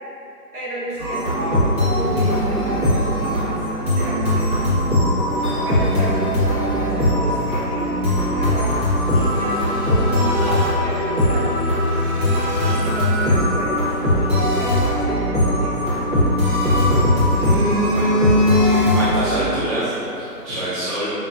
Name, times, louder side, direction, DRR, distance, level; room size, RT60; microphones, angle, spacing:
voice 1, 0.5-4.7 5.6-8.9 9.1-11.7 12.6-13.9 14.2-16.0, right 1 dB, 65° right, -7 dB, 1.2 m, -31 dB
sound 1, 1.0-19.5, left 1 dB, 30° right, 1.2 m, -20 dB
Telephone, 1.4-4.0 5.2-7.1 7.7-7.9 8.4-8.5 8.9-10.9 11.2-11.3 11.8-14.2 15.8-16.7 17.1-19.3 19.6-19.8, left 1 dB, 85° right, 1.3 m, -26 dB
voice 2, 18.9-21.1, right 1 dB, 45° right, -12 dB, 0.9 m, -26 dB
5.3 x 2.1 x 2.5 m, 2.8 s
figure-of-eight pair, 155°, 47 cm